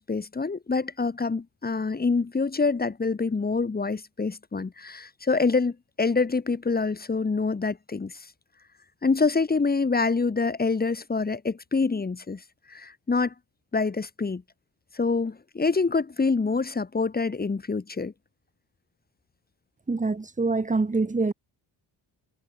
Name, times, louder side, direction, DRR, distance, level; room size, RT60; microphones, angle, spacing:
voice 1, 0.0-8.3 9.0-12.4 12.7-13.3 13.7-14.4 14.9-18.1, left 4 dB, 20° left, 3.9 m, -26 dB
voice 2, 19.9-21.3, right 3 dB, 20° right, 4.1 m, -25 dB
cardioid pair, 130°, 41 cm